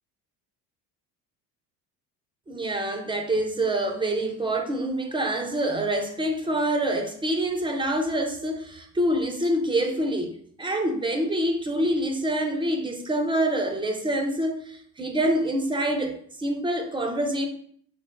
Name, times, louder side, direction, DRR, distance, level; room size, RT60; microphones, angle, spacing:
voice 1, 2.5-17.5, right 1 dB, 10° right, 0.4 m, -26 dB
3.8 x 2.0 x 3.6 m
hypercardioid pair, 70°, 49 cm